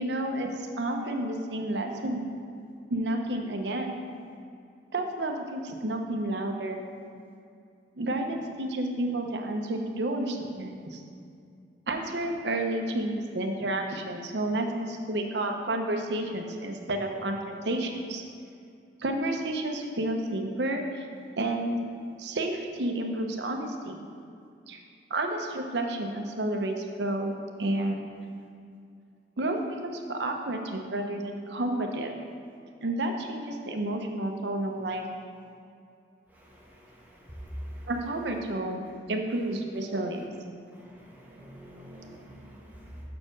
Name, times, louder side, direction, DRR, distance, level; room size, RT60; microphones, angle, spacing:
voice 1, 0.0-2.3 2.9-3.9 4.9-6.8 8.0-11.0 11.9-18.2 19.0-21.0 21.4-21.8 22.2-24.0 24.7-24.8 25.1-27.3 27.6-28.0 29.4-32.1 32.8-35.0 37.9-40.2, right 1 dB, 70° right, 3 dB, 0.8 m, -30 dB
voice 2, 36.4-37.9 40.7-43.0, equal, 10° right, -4 dB, 1.1 m, -45 dB
6.5 x 4.4 x 6.1 m, 2.4 s
head